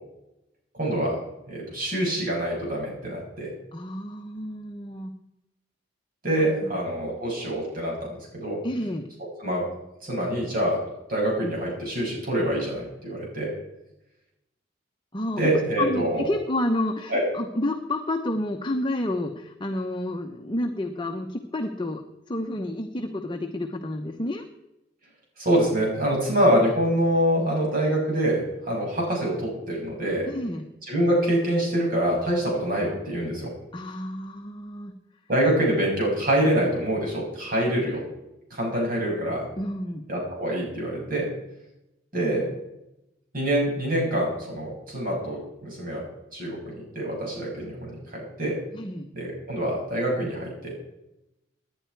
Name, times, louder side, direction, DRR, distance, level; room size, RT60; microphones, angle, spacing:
voice 1, 0.7-1.1 1.5-3.5 6.2-8.6 9.4-9.6 10.0-10.8 11.1-13.5 15.4-16.2 17.1-17.2 25.4-30.3 30.9-33.5 35.3-38.0 38.5-39.5 40.1-41.3 42.1-42.5 43.3-46.0 46.3-48.6 49.1-50.7, right 1 dB, 50° right, -2 dB, 6.6 m, -25 dB
voice 2, 3.7-5.1 6.6-6.7 8.6-9.0 15.1-15.4 15.8-22.0 22.3-24.4 30.3-30.7 33.7-34.9 39.6-40.0 48.7-49.1, left 1 dB, 25° left, 4 dB, 0.9 m, -30 dB
18.0 x 10.5 x 4.6 m, 0.90 s
head